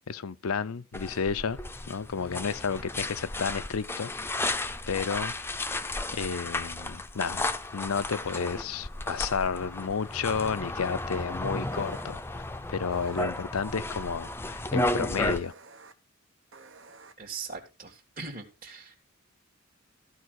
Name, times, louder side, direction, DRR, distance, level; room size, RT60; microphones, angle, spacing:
voice 1, 0.1-1.6 1.9-4.1 4.4-5.3 6.1-7.5 7.7-12.2 12.7-15.5, left 5 dB, 90° left, 0.6 m, -31 dB
sound 1, 0.9-15.4, left 2 dB, 10° left, 0.6 m, -33 dB
sound 2, 4.5-4.6 5.7-5.8 8.1-8.3 9.3-9.5 11.7-12.0 12.9-13.2 15.3-15.9 16.5-17.1, right 4 dB, 65° right, 1.2 m, -51 dB
voice 2, 17.2-19.0, right 4 dB, 40° right, 1.7 m, -40 dB
14.0 x 4.6 x 6.3 m
head